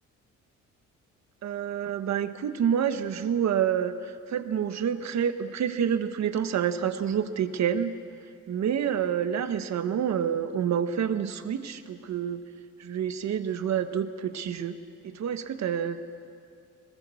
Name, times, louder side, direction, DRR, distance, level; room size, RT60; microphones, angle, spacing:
voice 1, 1.4-7.9 8.5-12.4 12.8-14.8 15.0-16.1, right 8 dB, 65° right, 9 dB, 1.4 m, -28 dB
21.5 x 21.5 x 7.1 m, 2.3 s
cardioid pair, 90°, 30 cm